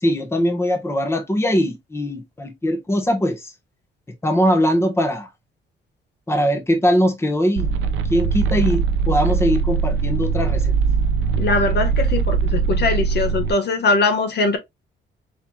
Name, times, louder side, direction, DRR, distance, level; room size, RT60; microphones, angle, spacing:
voice 1, 0.0-3.5 4.2-5.3 6.3-7.7 8.1-10.7, equal, 15° left, 1.1 m, -21 dB
sound 1, 7.6-13.5, right 5 dB, 80° right, 0.6 m, -21 dB
voice 2, 11.4-14.6, left 3 dB, 60° left, 1.3 m, -21 dB
4.5 x 3.5 x 2.2 m
cardioid pair, 90°, 20 cm